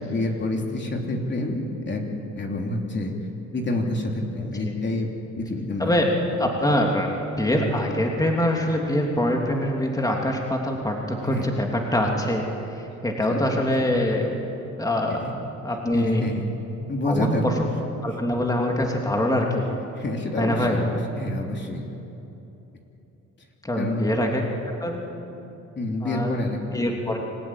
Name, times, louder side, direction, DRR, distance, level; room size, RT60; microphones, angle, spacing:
voice 1, 0.0-2.0 2.4-3.1 3.5-5.1 5.4-6.2 11.2-11.5 13.3-13.6 15.1-15.3 15.9-16.4 16.9-17.6 19.9-21.8 23.8-24.1 25.7-26.8, left 1 dB, 35° left, 1 dB, 3.4 m, -28 dB
voice 2, 6.4-12.4 12.7-14.5 14.8-15.2 15.6-16.2 17.0-17.5 18.0-19.6 20.4-20.8 23.6-24.4 24.8-25.1 26.0-26.4 26.7-27.2, left 1 dB, 10° left, 0 dB, 3.1 m, -24 dB
26.5 x 15.0 x 9.9 m, 3.0 s
cardioid pair, 90°, 30 cm